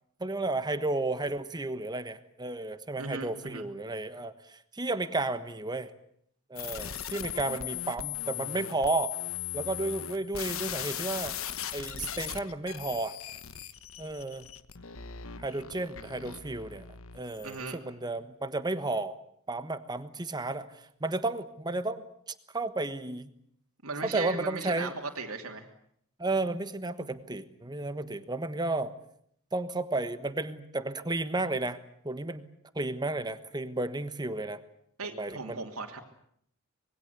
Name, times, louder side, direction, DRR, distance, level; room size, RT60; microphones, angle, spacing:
voice 1, 0.2-5.9 6.5-9.1 9.5-11.4 11.7-13.2 14.0-14.5 15.4-16.8 17.1-19.2 19.5-23.3 24.0-24.9 26.2-28.9 29.5-31.8 32.0-32.5 32.7-34.6 35.1-35.6, right 2 dB, 20° right, 11 dB, 1.3 m, -33 dB
voice 2, 3.0-3.7 17.4-17.7 23.8-25.7 35.0-36.0, right 3 dB, 70° right, 3 dB, 2.9 m, -37 dB
sound 1, 6.6-17.7, left 10 dB, 65° left, 1.2 m, -38 dB
26.0 x 21.5 x 8.3 m, 0.68 s
head